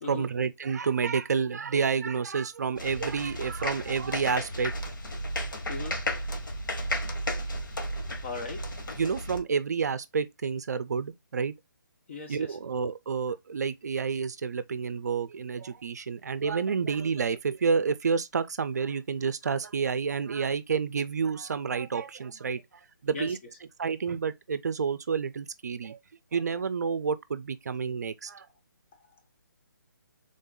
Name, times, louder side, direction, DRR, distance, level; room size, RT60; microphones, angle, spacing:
voice 1, 0.0-4.7 9.0-11.5 12.3-22.6 23.0-23.4 23.8-26.0 26.3-28.5, right 5 dB, 55° right, 0.5 m, -29 dB
sound 1, 2.8-9.4, equal, 80° left, 1.3 m, -33 dB
voice 2, 5.7-6.0 8.2-8.6 12.1-12.5 23.1-23.3, left 3 dB, 35° left, 1.0 m, -37 dB
3.8 x 2.6 x 3.7 m
hypercardioid pair, 165°, 11 cm